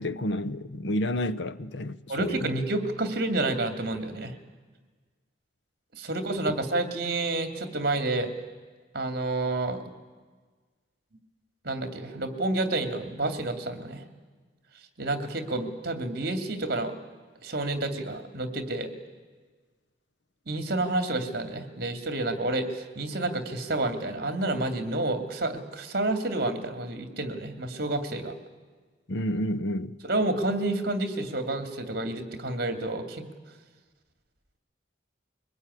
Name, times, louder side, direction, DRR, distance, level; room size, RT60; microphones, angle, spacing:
voice 1, 0.0-2.5 29.1-30.0, left 1 dB, 70° left, 0.8 m, -30 dB
voice 2, 2.1-4.3 5.9-8.3 8.9-9.8 11.6-14.0 15.0-16.9 17.4-18.9 20.5-28.3 30.0-33.3, right 2 dB, 55° right, 2.6 m, -29 dB
23.0 x 20.0 x 9.8 m
head